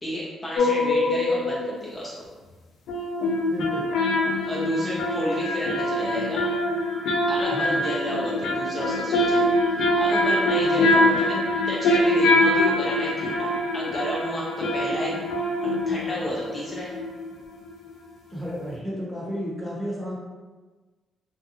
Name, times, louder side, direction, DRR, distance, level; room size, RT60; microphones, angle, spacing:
voice 1, 0.0-2.1 4.4-6.4 7.3-9.5 9.7-11.4 11.7-15.2 15.6-16.9, equal, 25° left, -5 dB, 0.5 m, -31 dB
sound 1, 0.6-1.8 2.9-17.4 17.7-17.8, left 1 dB, 80° left, 0.4 m, -24 dB
voice 2, 3.5-3.9 7.5-7.8 10.6-10.9 18.3-20.2, equal, 10° right, -6 dB, 0.9 m, -32 dB
2.5 x 2.2 x 2.8 m, 1.3 s
cardioid pair, 90°, 0 cm